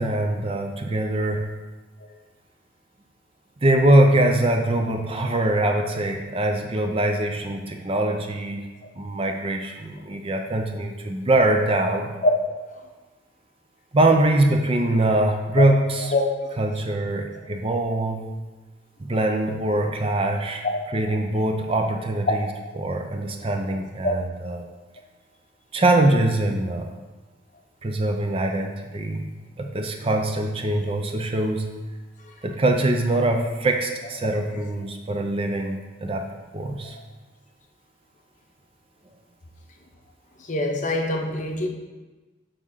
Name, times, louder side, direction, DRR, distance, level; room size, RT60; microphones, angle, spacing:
voice 1, 0.0-1.5 3.6-8.7 9.0-12.1 13.9-16.1 16.6-18.4 19.0-20.6 20.9-22.4 22.8-24.6 25.7-26.9 27.8-29.3 29.6-31.7 32.4-36.3 36.5-37.0, right 1 dB, 30° right, 4 dB, 0.5 m, -23 dB
voice 2, 16.0-16.6 20.6-21.2 22.6-22.7 32.2-32.3 36.8-37.0 40.4-41.7, left 2 dB, 40° left, 2 dB, 0.7 m, -25 dB
6.9 x 3.6 x 5.5 m, 1.2 s
head